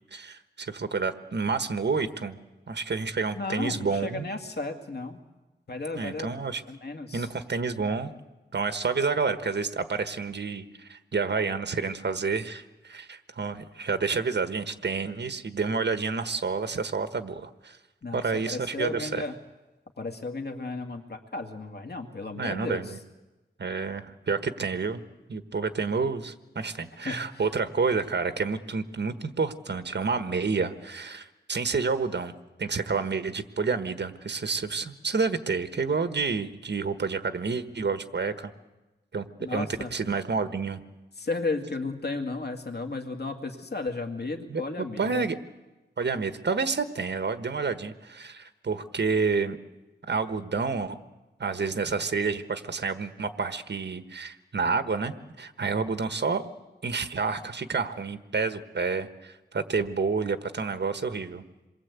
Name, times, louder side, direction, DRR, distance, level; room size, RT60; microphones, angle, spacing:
voice 1, 0.1-2.3 2.7-4.3 5.9-6.6 7.1-8.1 8.5-17.8 18.1-19.2 22.4-23.0 23.6-25.0 25.3-32.3 32.6-38.5 39.1-39.3 39.5-39.7 39.9-40.8 44.5-45.4 46.0-49.6 50.1-51.0 51.4-56.4 56.8-61.4, right 4 dB, 70° right, 9 dB, 1.4 m, -29 dB
voice 2, 3.3-5.2 5.7-6.3 6.7-7.3 18.0-19.3 20.0-23.0 27.0-27.5 39.4-39.9 41.2-45.2, left 3 dB, 60° left, 5 dB, 2.2 m, -34 dB
27.0 x 22.5 x 8.3 m, 1.1 s
wide cardioid pair, 70°, 19 cm